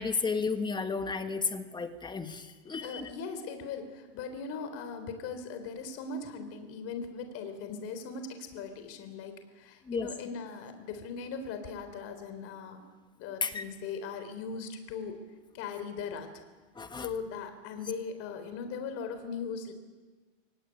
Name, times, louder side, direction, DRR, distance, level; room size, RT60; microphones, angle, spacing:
voice 1, 0.0-3.1 9.9-10.1 13.4-13.6 16.8-17.1, left 4 dB, 10° left, 9 dB, 1.4 m, -33 dB
voice 2, 2.8-12.8 13.2-15.2 15.5-16.3 17.0-19.7, left 5 dB, 40° left, 8 dB, 3.9 m, -39 dB
24.0 x 17.0 x 9.7 m, 1.4 s
supercardioid pair, 140°, 38 cm